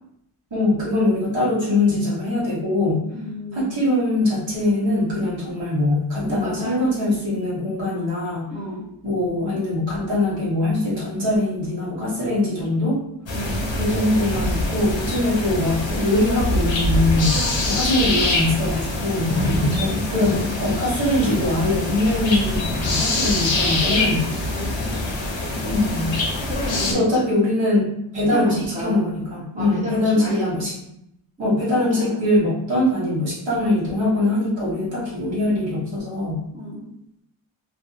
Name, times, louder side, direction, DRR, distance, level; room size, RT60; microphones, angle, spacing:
voice 1, 0.5-3.0 3.5-8.5 9.0-13.0 13.8-19.3 19.7-24.2 25.6-26.1 26.9-30.7 31.4-36.4, left 1 dB, 65° right, -7 dB, 1.2 m, -22 dB
voice 2, 3.1-3.7 6.3-6.8 8.5-8.9 13.3-13.7 19.4-19.6 24.2-25.1 25.8-25.9 26.2-27.0 28.3-29.0 29.5-30.5 31.4-32.0 36.5-36.8, left 1 dB, 15° right, -7 dB, 1.0 m, -32 dB
sound 1, 13.3-26.9, left 2 dB, 65° left, 0.7 m, -24 dB
2.6 x 2.5 x 2.4 m, 0.79 s
wide cardioid pair, 65°, 50 cm